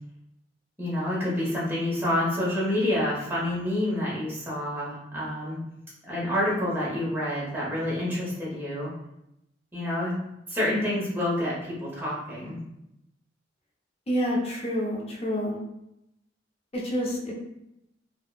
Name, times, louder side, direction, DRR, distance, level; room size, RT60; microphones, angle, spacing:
voice 1, 0.8-5.6 6.1-8.9 9.7-10.1 10.5-12.6, left 1 dB, 10° right, -7 dB, 1.0 m, -28 dB
voice 2, 14.1-15.6 16.7-17.3, equal, 30° left, -3 dB, 0.6 m, -28 dB
3.5 x 2.2 x 2.3 m, 0.84 s
head